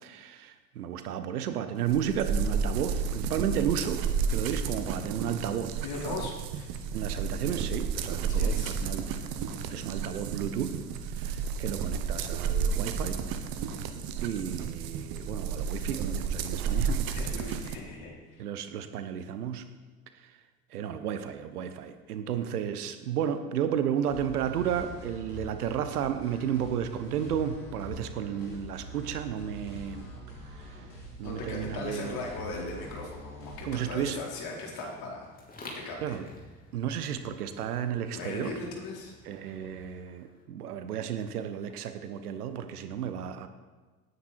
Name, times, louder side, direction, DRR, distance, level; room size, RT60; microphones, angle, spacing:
voice 1, 0.0-4.0 4.3-6.1 6.9-9.1 9.7-10.8 11.1-13.2 14.2-17.0 18.4-19.6 20.2-20.3 20.7-30.1 30.6-30.7 31.2-32.2 33.6-34.2 36.0-36.2 36.7-38.5 39.2-43.5, right 9 dB, 70° right, 10 dB, 1.2 m, -33 dB
sound 1, 1.9-17.8, right 6 dB, 45° right, 1.3 m, -32 dB
voice 2, 5.8-6.7 8.3-8.8 17.1-18.4 31.2-35.3 35.6-36.2 38.1-39.9, left 3 dB, 50° left, -2 dB, 4.5 m, -39 dB
sound 2, 24.1-34.1, right 1 dB, 85° left, 3.8 m, -44 dB
sound 3, 33.2-40.4, left 1 dB, 20° left, 3.6 m, -51 dB
18.0 x 9.7 x 4.5 m, 1.3 s
figure-of-eight pair, 75°, 47 cm